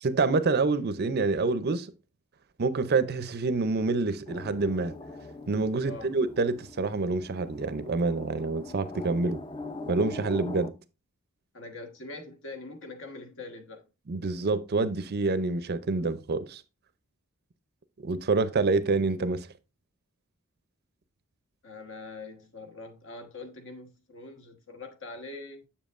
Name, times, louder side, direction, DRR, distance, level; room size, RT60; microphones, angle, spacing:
voice 1, 0.0-1.9 2.6-4.9 5.5-9.4 9.9-10.7 14.1-16.6 18.0-19.5, right 3 dB, 45° right, 0.5 m, -27 dB
sound 1, 4.3-10.7, left 2 dB, 20° left, 0.5 m, -42 dB
voice 2, 5.8-6.2 11.5-13.8 21.6-25.7, left 3 dB, 60° left, 1.2 m, -43 dB
7.2 x 7.1 x 2.5 m
head